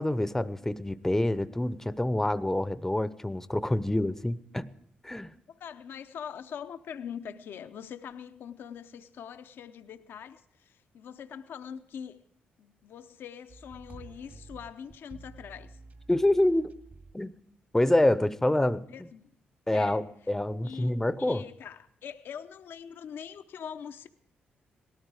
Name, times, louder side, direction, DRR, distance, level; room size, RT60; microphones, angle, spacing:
voice 1, 0.0-4.7 5.0-5.3 16.1-16.7 17.1-17.3 17.7-18.9 19.7-21.4, left 1 dB, 10° left, 0.7 m, -26 dB
voice 2, 5.5-12.2 12.6-15.8 18.9-19.3 19.7-20.0 20.6-24.1, left 8 dB, 75° left, 0.7 m, -43 dB
sound 1, 13.5-17.2 17.8-17.9, right 3 dB, 55° right, 2.0 m, -50 dB
18.0 x 13.0 x 4.9 m
cardioid pair, 65°, 4 cm